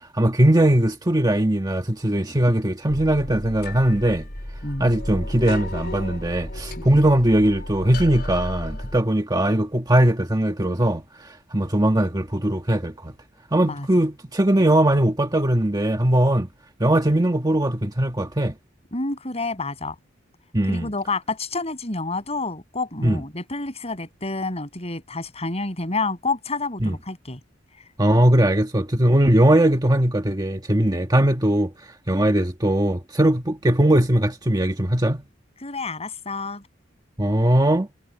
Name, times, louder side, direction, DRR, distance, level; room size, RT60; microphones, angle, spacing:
voice 1, 0.1-4.2 4.8-13.1 13.5-16.5 16.8-18.5 20.5-20.9 23.0-23.2 26.8-27.0 28.0-31.7 32.1-35.2 37.2-37.9, right 1 dB, 20° right, 1.5 m, -20 dB
sound 1, 2.9-9.0, left 1 dB, 55° left, 4.5 m, -33 dB
voice 2, 4.6-4.9 6.8-7.0 13.7-13.9 18.9-20.0 20.7-27.4 35.6-36.6, left 3 dB, 35° left, 7.7 m, -29 dB
head